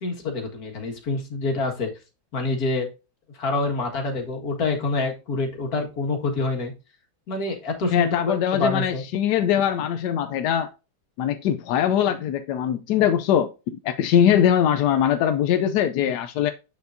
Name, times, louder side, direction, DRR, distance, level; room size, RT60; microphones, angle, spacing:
voice 1, 0.0-1.9 2.3-2.9 3.3-6.7 7.3-8.2 8.5-9.0, left 3 dB, 50° left, 2.2 m, -26 dB
voice 2, 7.9-10.7 11.2-16.5, left 9 dB, 70° left, 1.0 m, -22 dB
8.1 x 6.8 x 2.6 m
omnidirectional pair, 2.2 m